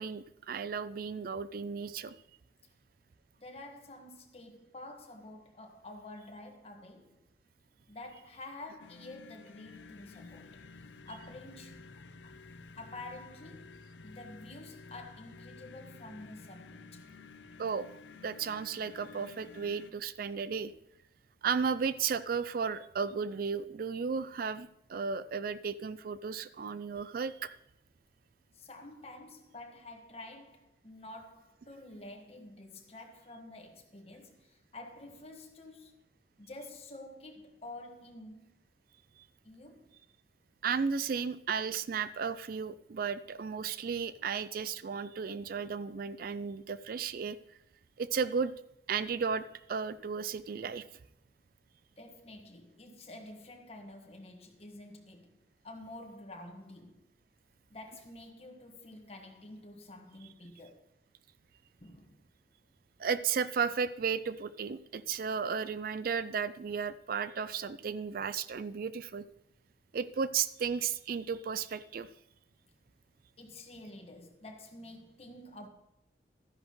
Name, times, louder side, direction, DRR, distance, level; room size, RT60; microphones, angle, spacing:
voice 1, 0.0-2.2 17.6-17.9 18.2-20.7 21.4-27.5 39.2-39.3 40.6-47.4 48.0-48.5 48.9-50.8 63.0-69.3 69.9-72.1, right 6 dB, 55° right, 0.4 m, -34 dB
voice 2, 3.4-7.2 7.9-11.8 12.2-12.4 12.8-17.1 28.5-36.1 36.4-38.5 39.4-39.9 52.0-55.4 55.6-57.0 57.7-60.8 61.8-62.2 73.4-75.7, left 2 dB, 35° left, 1.5 m, -49 dB
mysterious synth drone loop, 8.8-19.9, left 4 dB, 85° left, 0.6 m, -52 dB
13.0 x 10.5 x 3.1 m
head